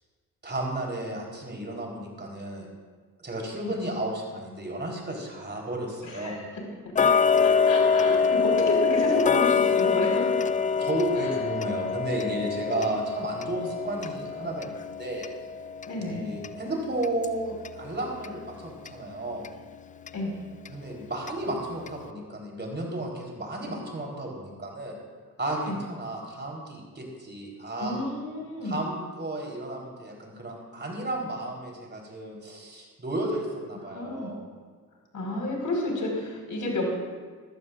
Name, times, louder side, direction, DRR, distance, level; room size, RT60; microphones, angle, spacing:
voice 1, 0.4-2.7 3.2-6.4 10.7-15.3 16.0-19.5 20.7-25.0 25.4-28.0 28.6-34.4, right 1 dB, 20° right, -1 dB, 4.1 m, -33 dB
voice 2, 6.0-6.4 7.4-10.3 11.2-11.3 12.7-12.8 15.9-16.2 20.1-20.4 25.7-25.8 27.8-28.8 33.9-34.3 35.1-36.9, left 1 dB, 40° left, 0 dB, 5.2 m, -30 dB
Tick-tock, 7.0-17.8 18.2-18.3 18.9-19.0 19.4-19.5 20.1-20.2 20.7-20.8 21.3-21.4 21.9-22.0, left 5 dB, 15° left, 0.4 m, -25 dB
21.0 x 15.5 x 2.6 m, 1.5 s
figure-of-eight pair, 40°, 47 cm